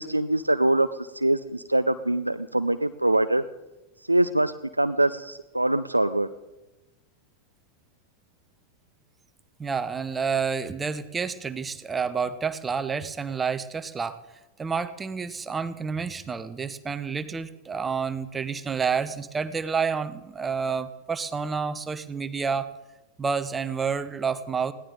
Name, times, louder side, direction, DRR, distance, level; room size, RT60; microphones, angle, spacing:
voice 1, 0.0-3.4 4.0-6.3, right 1 dB, 85° right, 10 dB, 0.5 m, -24 dB
voice 2, 9.6-14.2 14.6-22.7 23.2-24.7, right 5 dB, 15° right, 13 dB, 0.9 m, -29 dB
21.0 x 16.5 x 3.9 m, 1.0 s
figure-of-eight pair, 90°, 0 cm